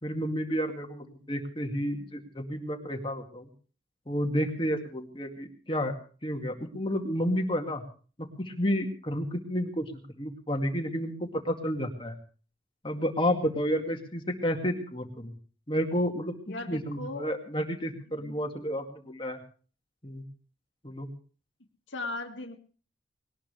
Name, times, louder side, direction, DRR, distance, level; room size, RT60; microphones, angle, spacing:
voice 1, 0.0-3.5 4.1-5.9 6.2-7.8 8.4-9.9 10.2-12.2 12.8-15.3 15.7-19.4 20.0-20.2 20.8-21.1, equal, 25° left, 3 dB, 2.1 m, -31 dB
voice 2, 16.5-17.3 18.1-18.4 21.9-22.6, left 2 dB, 70° left, 3 dB, 2.1 m, -37 dB
20.5 x 19.0 x 3.3 m, 0.40 s
head